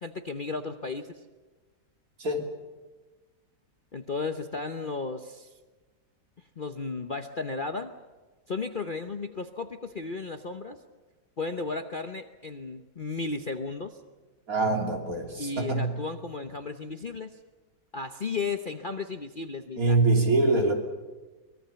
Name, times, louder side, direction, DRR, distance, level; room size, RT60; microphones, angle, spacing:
voice 1, 0.0-1.1 3.9-5.5 6.6-7.9 8.5-10.8 11.4-14.0 15.4-17.4 17.9-20.0, left 4 dB, 40° left, 7 dB, 0.9 m, -34 dB
voice 2, 14.5-15.9 19.8-20.7, right 2 dB, 55° right, 2 dB, 3.6 m, -24 dB
24.0 x 21.5 x 7.0 m, 1.2 s
omnidirectional pair, 1.8 m